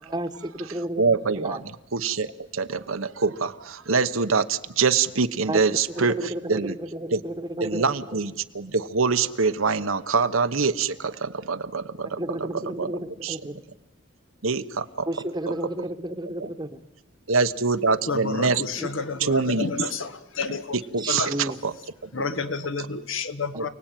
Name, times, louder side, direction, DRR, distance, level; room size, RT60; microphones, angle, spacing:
voice 1, 0.0-1.0 1.4-1.6 5.4-5.6 6.0-8.2 12.0-13.5 15.1-16.8 18.8-18.9 19.1-19.2 21.0-21.6 23.5-23.7, right 1 dB, 20° right, 9 dB, 1.2 m, -32 dB
voice 2, 1.0-6.8 7.1-7.2 7.6-12.9 13.2-13.4 14.4-15.1 15.5-15.6 16.4-16.5 17.3-18.6 19.2-19.7 20.5-21.7 22.8-22.9 23.5-23.7, right 4 dB, 80° right, 10 dB, 1.1 m, -25 dB
voice 3, 18.1-20.8 21.1-21.3 22.1-23.7, left 4 dB, 70° left, 10 dB, 1.4 m, -30 dB
29.0 x 19.0 x 9.2 m, 1.0 s
head